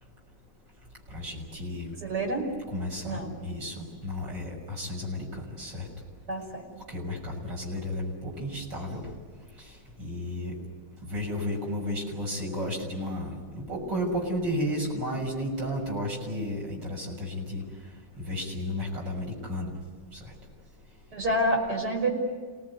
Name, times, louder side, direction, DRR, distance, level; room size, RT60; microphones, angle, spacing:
voice 1, 1.1-1.9 2.7-5.9 6.9-9.0 10.0-10.6 11.0-17.6 18.2-19.7 20.1-20.2, left 1 dB, 80° right, -1 dB, 7.1 m, -33 dB
voice 2, 2.0-2.5 3.0-3.3 6.3-6.6 21.1-22.1, right 1 dB, 65° right, 0 dB, 6.2 m, -28 dB
28.0 x 19.0 x 9.7 m, 1.5 s
omnidirectional pair, 1.9 m